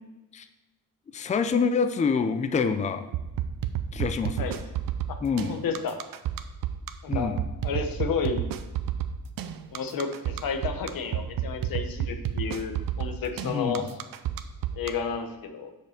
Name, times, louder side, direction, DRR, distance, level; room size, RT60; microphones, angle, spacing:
voice 1, 1.1-3.0 3.9-4.5 5.2-5.6 7.1-7.4 13.4-13.8, left 5 dB, 20° left, 9 dB, 0.4 m, -26 dB
sound 1, 3.1-14.9, right 11 dB, 70° right, 0.6 m, -30 dB
voice 2, 5.5-6.0 7.0-7.4 7.6-8.4 9.7-13.9 14.7-15.7, left 5 dB, 70° left, 6 dB, 1.0 m, -31 dB
6.6 x 5.5 x 5.8 m, 1.1 s
wide cardioid pair, 170°, 35 cm